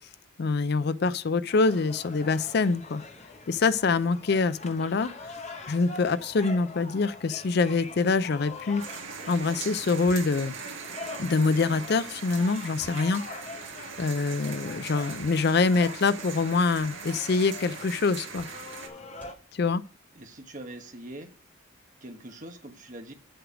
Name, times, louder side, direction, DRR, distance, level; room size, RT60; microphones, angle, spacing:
voice 1, 0.4-3.0 3.5-5.1 5.7-8.8 9.3-10.6 11.2-13.2 14.0-18.5 19.5-19.8, left 4 dB, 50° left, 0.4 m, -25 dB
sound 1, 1.5-19.3, left 3 dB, 30° left, 0.9 m, -44 dB
sound 2, 8.8-18.9, right 6 dB, 65° right, 2.0 m, -41 dB
sound 3, 10.0-10.5 12.1-13.1 13.5-14.1 14.8-15.5 16.5-17.0 18.2-18.7 19.1-19.5, equal, 10° left, 3.0 m, -54 dB
voice 2, 20.2-21.3 22.0-23.1, right 1 dB, 40° right, 1.3 m, -42 dB
7.9 x 6.3 x 5.0 m
head